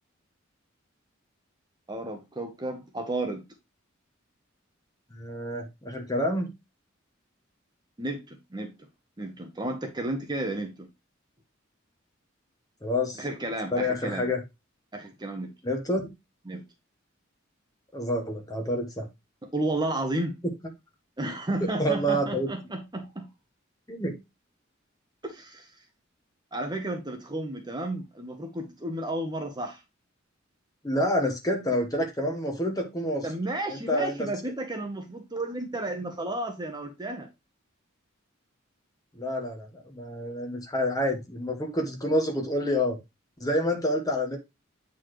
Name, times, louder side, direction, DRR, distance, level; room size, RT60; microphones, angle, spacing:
voice 1, 1.9-3.4 8.0-8.7 9.2-10.9 13.1-14.3 14.9-15.5 16.5-16.6 19.4-20.3 21.2-23.3 25.2-25.7 26.5-29.8 33.2-37.3, right 1 dB, 20° right, 1.0 m, -32 dB
voice 2, 5.1-6.5 12.8-13.2 13.7-14.4 15.6-16.1 17.9-19.1 21.6-22.5 23.9-24.1 30.8-33.3 33.7-34.3 39.1-43.0 43.4-44.4, equal, 20° left, 1.3 m, -28 dB
8.3 x 4.1 x 3.1 m
head